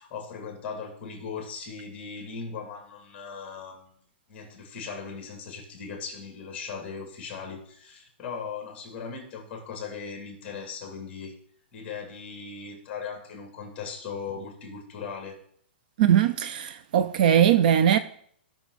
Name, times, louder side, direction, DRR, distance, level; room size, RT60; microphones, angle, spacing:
voice 1, 0.0-3.9 4.3-11.3 11.7-15.4, left 5 dB, 20° left, 3.0 m, -38 dB
voice 2, 16.0-18.0, right 9 dB, 45° right, 0.5 m, -20 dB
18.0 x 6.1 x 4.1 m
hypercardioid pair, 160°, 6 cm